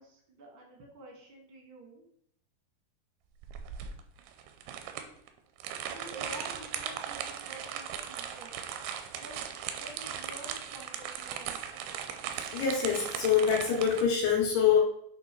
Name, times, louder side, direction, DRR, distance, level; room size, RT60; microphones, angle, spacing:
voice 1, 0.0-2.0 5.9-8.5 9.2-9.4 9.8-11.6, right 1 dB, 55° right, 0 dB, 1.4 m, -49 dB
sound 1, 3.4-14.0, right 8 dB, 85° right, 2.5 m, -38 dB
voice 2, 12.5-14.8, left 7 dB, 85° left, -4 dB, 3.2 m, -25 dB
8.0 x 3.2 x 4.5 m, 0.69 s
omnidirectional pair, 4.6 m